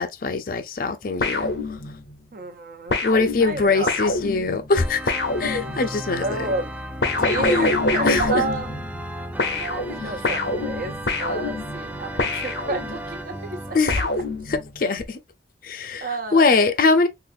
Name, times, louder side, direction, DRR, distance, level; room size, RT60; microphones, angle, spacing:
voice 1, 0.0-1.5 3.0-5.1 5.4-6.4 7.4-7.8 8.0-8.4 13.7-14.0 14.5-15.2 15.6-17.1, left 4 dB, 50° left, 0.5 m, -22 dB
sound 1, 1.2-2.2 2.9-6.1 7.0-9.1 9.4-13.2 13.9-14.9, left 3 dB, 75° left, 0.8 m, -26 dB
voice 2, 2.3-3.0 3.4-3.9 5.5-5.9 6.2-6.7 7.2-8.8 9.5-14.0 16.0-16.5, right 3 dB, 50° right, 0.6 m, -31 dB
Organ, 4.7-13.8, right 1 dB, 10° right, 0.3 m, -35 dB
3.9 x 2.5 x 2.5 m
head